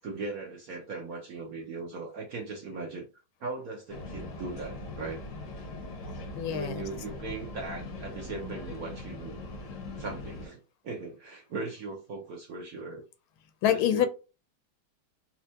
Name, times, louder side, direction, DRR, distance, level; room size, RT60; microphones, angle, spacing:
voice 1, 0.0-3.1 3.4-5.2 6.5-9.4 10.0-13.0 13.7-14.1, right 3 dB, 60° right, 1.0 m, -38 dB
sound 1, 3.9-10.5, left 2 dB, 55° left, 0.9 m, -41 dB
voice 2, 6.3-6.9 13.6-14.1, left 11 dB, 80° left, 1.4 m, -26 dB
4.3 x 2.3 x 2.7 m
omnidirectional pair, 2.3 m